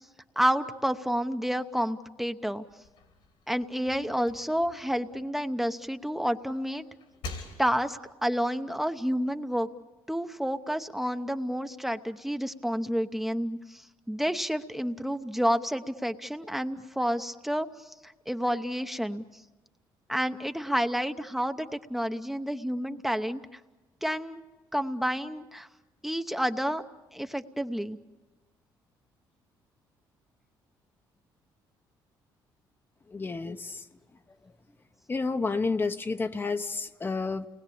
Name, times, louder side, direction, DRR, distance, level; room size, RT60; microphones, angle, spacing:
voice 1, 0.4-2.6 3.5-6.8 7.6-9.7 10.1-19.2 20.1-23.6 24.0-24.4 24.7-25.7 26.0-26.8 27.1-28.0, equal, 5° right, 7 dB, 0.9 m, -30 dB
sound 1, 2.7-5.9 6.3-8.1, left 3 dB, 80° left, 3.8 m, -46 dB
voice 2, 33.1-33.8 35.1-37.5, left 4 dB, 25° left, 8 dB, 0.9 m, -30 dB
29.5 x 20.0 x 8.7 m, 1.2 s
cardioid pair, 95°, 8 cm